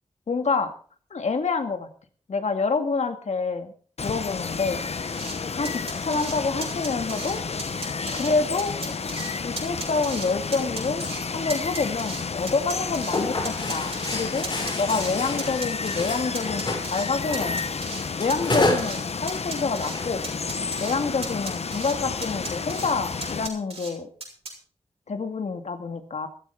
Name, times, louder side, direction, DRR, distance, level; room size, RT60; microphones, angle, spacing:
voice 1, 0.3-0.7 1.1-1.9 2.3-3.7 4.0-4.9 5.5-7.4 8.1-8.7 9.4-11.0 11.3-14.5 14.8-17.6 18.2-20.2 20.8-24.1 25.1-26.3, left 4 dB, 90° left, 7 dB, 2.0 m, -27 dB
Water, 4.0-23.5, left 5 dB, 65° left, 1.0 m, -31 dB
sound 1, 5.1-5.4 5.7-6.4 6.6-7.3 7.6-8.3 8.6-9.3 9.6-10.3 10.5-11.2 11.5-13.2 13.5-15.1 15.4-16.1 16.4-17.1 17.3-18.0 18.3-19.0 19.3-20.0 20.2-21.0 21.2-21.9 22.2-22.9 23.2-23.9 24.2-24.5, right 3 dB, 60° right, 6.7 m, -36 dB
sound 2, 7.5-9.1 9.4-10.8 11.3-11.6 12.1-12.2 12.6-12.7 12.9-17.6 17.9-19.0 19.3-19.4 19.8-21.1, left 2 dB, 45° left, 5.1 m, -31 dB
15.0 x 13.5 x 4.7 m, 0.43 s
wide cardioid pair, 105°, 11 cm